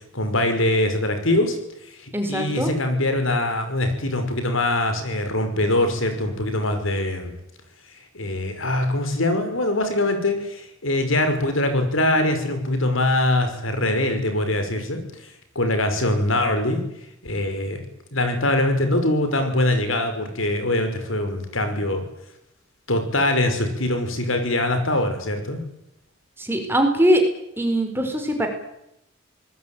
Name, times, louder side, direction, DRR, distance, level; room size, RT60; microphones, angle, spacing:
voice 1, 0.1-1.6 2.0-7.4 8.1-15.0 15.6-16.8 17.2-17.8 18.1-22.0 22.9-25.6, left 1 dB, 85° left, 7 dB, 5.8 m, -23 dB
voice 2, 2.1-2.7 26.4-27.2 27.6-28.5, equal, 10° right, 4 dB, 4.5 m, -21 dB
26.0 x 20.0 x 9.4 m, 0.82 s
head